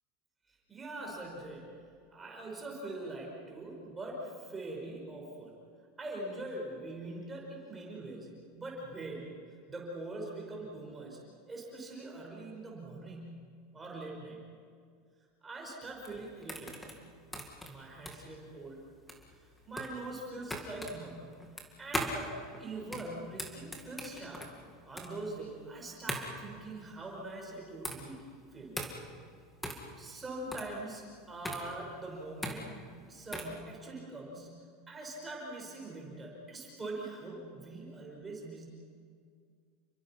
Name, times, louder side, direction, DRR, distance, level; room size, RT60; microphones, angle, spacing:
voice 1, 0.5-1.7 2.1-5.6 6.0-9.4 9.7-11.2 11.5-13.4 13.7-14.4 15.4-16.8 17.7-18.8 19.3-21.3 21.8-22.3 22.6-24.5 24.8-28.2 28.5-28.8 30.0-38.7, right 2 dB, 10° right, -2 dB, 5.2 m, -43 dB
sound 1, 15.8-33.6, equal, 5° left, 2.1 m, -41 dB
30.0 x 23.0 x 5.9 m, 2.1 s
supercardioid pair, 175°, 0 cm